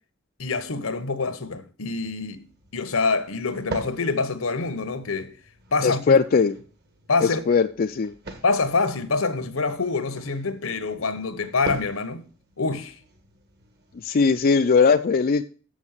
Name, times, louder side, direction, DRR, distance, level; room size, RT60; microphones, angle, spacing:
voice 1, 0.4-2.4 2.7-5.3 5.7-6.2 7.1-7.4 8.4-12.2 12.6-13.0, left 4 dB, 80° left, 1.1 m, -26 dB
sound 1, 2.2-14.6, right 2 dB, 50° right, 1.6 m, -43 dB
voice 2, 5.8-6.6 7.2-8.1 14.0-15.4, left 5 dB, 45° left, 0.4 m, -19 dB
7.2 x 6.3 x 7.3 m
head